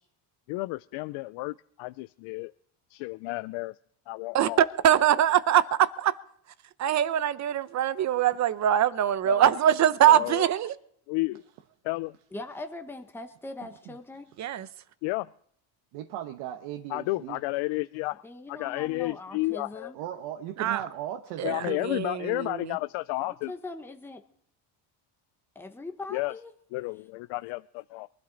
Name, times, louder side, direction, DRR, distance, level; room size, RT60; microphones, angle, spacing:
voice 1, 0.5-2.5 2.9-3.7 4.1-4.6 9.3-9.5 10.1-10.4 11.1-11.4 11.8-12.1 15.0-15.3 16.9-18.2 18.5-19.9 21.4-23.5 26.1-26.3 26.7-28.1, left 22 dB, 80° left, 0.5 m, -32 dB
voice 2, 4.3-6.1 6.8-10.7 14.4-14.6 20.6-20.8 21.4-22.7, right 11 dB, 35° right, 0.7 m, -23 dB
voice 3, 12.3-14.3 18.2-20.0 23.2-24.2 25.5-26.5, left 2 dB, 5° left, 1.0 m, -41 dB
voice 4, 15.9-17.4 19.9-21.9, right 11 dB, 85° right, 1.3 m, -37 dB
23.0 x 12.5 x 4.0 m
cardioid pair, 150°, 46 cm